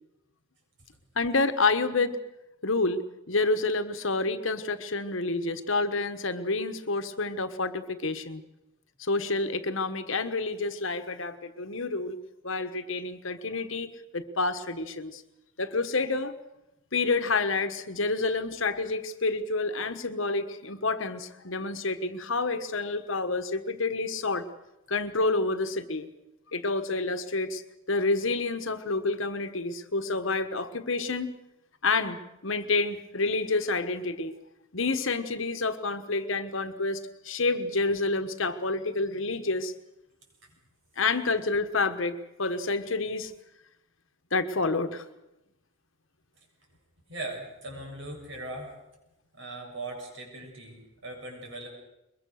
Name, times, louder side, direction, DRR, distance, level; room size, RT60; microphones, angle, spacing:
voice 1, 1.1-2.2 2.6-8.4 9.0-12.2 12.4-15.2 15.6-16.3 16.9-24.4 24.9-26.1 26.5-27.6 27.9-31.3 31.8-34.3 34.7-39.7 41.0-43.3 44.3-45.1, left 3 dB, 70° left, 9 dB, 1.4 m, -28 dB
voice 2, 47.1-48.7 49.3-51.7, right 2 dB, 60° right, 1 dB, 7.2 m, -39 dB
22.5 x 21.5 x 6.6 m, 0.91 s
head